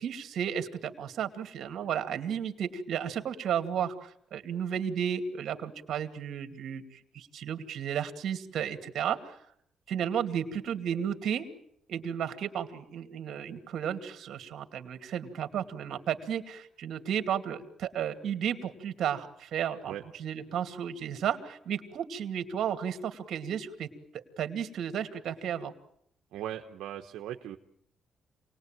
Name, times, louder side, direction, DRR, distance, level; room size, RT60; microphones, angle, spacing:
voice 1, 0.0-9.4 9.9-11.5 11.9-23.9 24.1-25.7, right 8 dB, 70° right, 9 dB, 2.5 m, -33 dB
voice 2, 26.3-27.6, right 11 dB, 85° right, 5 dB, 1.1 m, -38 dB
28.0 x 20.0 x 9.1 m, 0.74 s
cardioid pair, 90°, 0 cm